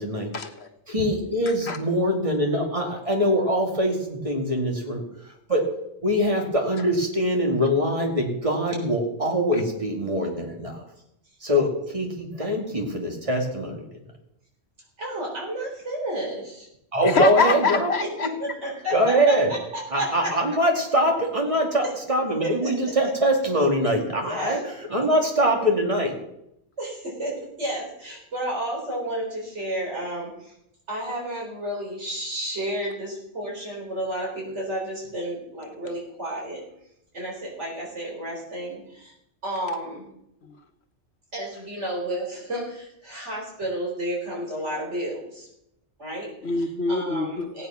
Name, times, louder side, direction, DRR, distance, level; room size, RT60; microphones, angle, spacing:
voice 1, 0.3-0.7 1.5-1.8 9.5-9.6 17.0-18.3 40.4-40.6 46.4-47.5, left 4 dB, 65° left, 7 dB, 1.5 m, -25 dB
voice 2, 0.9-5.0 5.5-5.6 6.0-10.8 11.4-13.8 16.9-17.9 18.9-19.5 19.9-24.6 24.9-26.1, equal, 30° right, 1 dB, 2.6 m, -23 dB
voice 3, 15.0-16.7 18.2-20.3 22.4-22.7 24.2-24.7 26.8-30.5 30.9-36.6 37.1-39.1 39.4-40.1 41.3-45.5 46.0-46.3 46.9-47.7, right 1 dB, 75° right, -2 dB, 4.5 m, -31 dB
16.5 x 9.3 x 5.9 m, 0.81 s
omnidirectional pair, 1.2 m